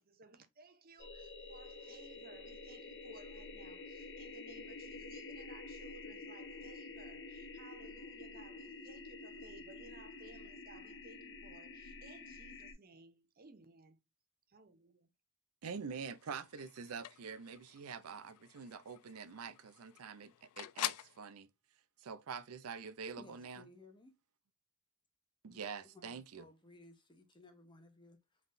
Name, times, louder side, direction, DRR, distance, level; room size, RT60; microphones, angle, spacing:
voice 1, 0.0-14.0 14.5-15.1, right 3 dB, 45° right, 0.7 m, -59 dB
sound 1, 1.0-12.7, left 3 dB, 55° left, 0.9 m, -49 dB
voice 2, 15.6-21.5 22.0-23.6 25.4-26.5, right 6 dB, 85° right, 0.5 m, -46 dB
sound 2, 16.1-21.2, left 14 dB, 85° left, 0.3 m, -46 dB
voice 3, 23.2-24.1 25.5-28.4, left 2 dB, 20° left, 0.8 m, -59 dB
3.9 x 3.5 x 2.6 m
head